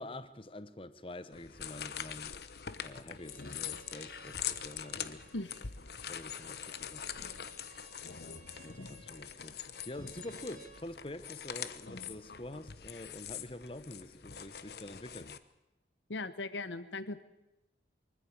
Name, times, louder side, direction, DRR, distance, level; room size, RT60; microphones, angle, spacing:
voice 1, 0.0-2.3 2.7-5.2 6.1-7.1 8.6-9.6 9.9-15.3, left 1 dB, 30° left, 1.0 m, -46 dB
sound 1, 1.3-15.4, left 8 dB, 60° left, 1.0 m, -43 dB
Bowed string instrument, 3.2-10.8, right 4 dB, 40° right, 3.6 m, -59 dB
voice 2, 16.1-17.2, left 2 dB, 80° left, 1.1 m, -39 dB
24.0 x 14.5 x 8.7 m
head